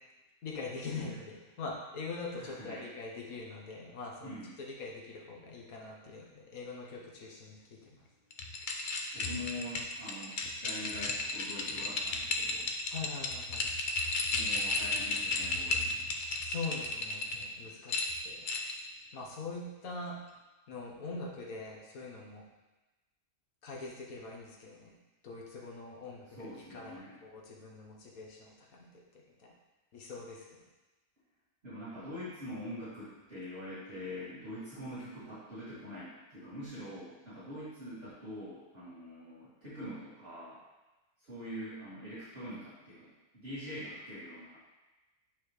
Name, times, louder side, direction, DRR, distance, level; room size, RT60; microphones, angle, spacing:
voice 1, 0.4-8.0 12.9-13.7 16.4-18.5 19.1-20.2 20.7-22.4 23.6-24.9 25.2-29.5 29.9-30.6, left 3 dB, 75° left, -1 dB, 1.6 m, -43 dB
voice 2, 2.4-2.8 4.2-4.5 9.1-12.6 14.2-16.1 26.4-27.1 31.6-40.6 41.2-44.6, equal, 45° right, -13 dB, 3.0 m, -44 dB
sound 1, 8.3-17.4 17.9-18.9, left 3 dB, 45° left, 0.7 m, -33 dB
8.9 x 5.4 x 3.2 m, 1.1 s
omnidirectional pair, 1.5 m